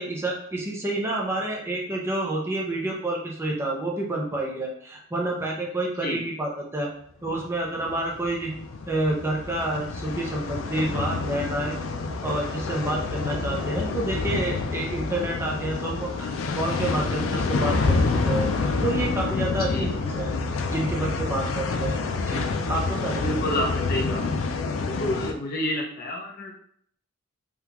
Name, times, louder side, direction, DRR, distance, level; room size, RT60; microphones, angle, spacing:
voice 1, 0.0-6.9 7.2-8.5 8.9-11.7 12.2-18.0 18.2-18.5 18.8-20.3 20.7-22.4 22.7-23.2, right 2 dB, 15° right, -1 dB, 0.5 m, -29 dB
sound 1, 7.8-25.3, left 3 dB, 80° left, 0.4 m, -28 dB
voice 2, 19.5-19.9 23.2-24.3 24.9-26.6, equal, 50° left, -1 dB, 0.7 m, -29 dB
3.5 x 2.3 x 2.9 m, 0.65 s
head